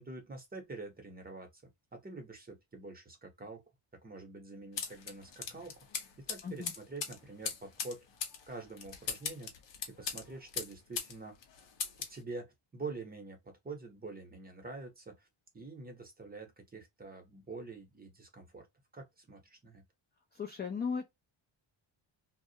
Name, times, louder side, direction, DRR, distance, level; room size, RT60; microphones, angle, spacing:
voice 1, 0.0-1.6 1.9-3.6 3.9-5.8 6.2-8.1 8.5-9.5 9.9-11.4 12.1-15.3 15.5-18.7 18.9-19.8, right 3 dB, 20° right, 0.8 m, -46 dB
sound 1, 4.8-11.2 11.4-12.2, left 6 dB, 60° left, 0.8 m, -40 dB
voice 2, 20.3-21.0, left 6 dB, 25° left, 0.3 m, -36 dB
2.3 x 2.1 x 2.7 m
cardioid pair, 125°, 49 cm